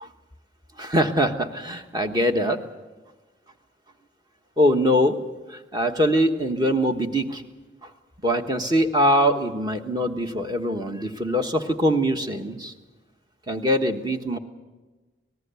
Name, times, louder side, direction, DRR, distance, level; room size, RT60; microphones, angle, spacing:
voice 1, 0.8-2.6 4.6-5.2 5.5-7.4 7.8-7.9 8.2-12.7 13.5-14.4, equal, 20° right, 5 dB, 1.3 m, -23 dB
25.5 x 19.0 x 7.0 m, 1.2 s
head